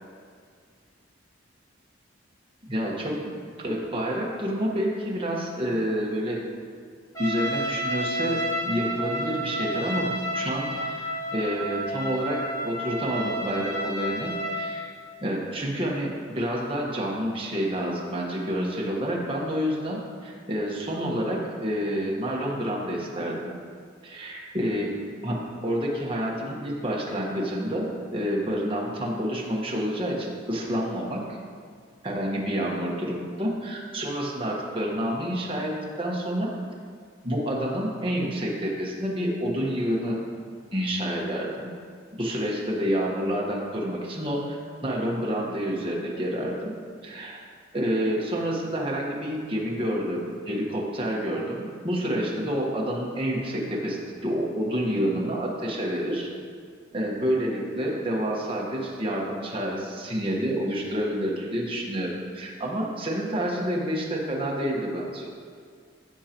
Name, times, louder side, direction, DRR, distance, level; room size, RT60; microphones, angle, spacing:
voice 1, 2.7-3.2 3.6-6.4 7.2-14.9 15.2-23.5 24.0-24.9 25.2-31.2 32.0-36.5 37.2-40.2 40.7-41.7 42.1-46.7 47.0-47.4 47.7-56.3 56.9-65.3, equal, 25° right, -3 dB, 1.4 m, -28 dB
Trumpet, 7.2-14.8, equal, 15° left, 1.8 m, -31 dB
15.0 x 6.6 x 3.0 m, 2.1 s
head